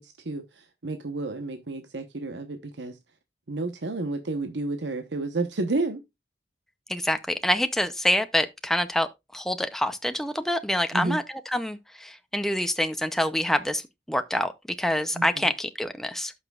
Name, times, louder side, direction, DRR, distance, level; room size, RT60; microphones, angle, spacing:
voice 1, 0.0-3.0 3.5-6.0 10.9-11.2 15.1-15.5, right 2 dB, 85° right, 1.0 m, -31 dB
voice 2, 6.9-11.2 11.5-13.8 14.1-14.5 14.8-16.3, left 1 dB, ahead, 0.5 m, -26 dB
14.0 x 5.9 x 2.4 m
head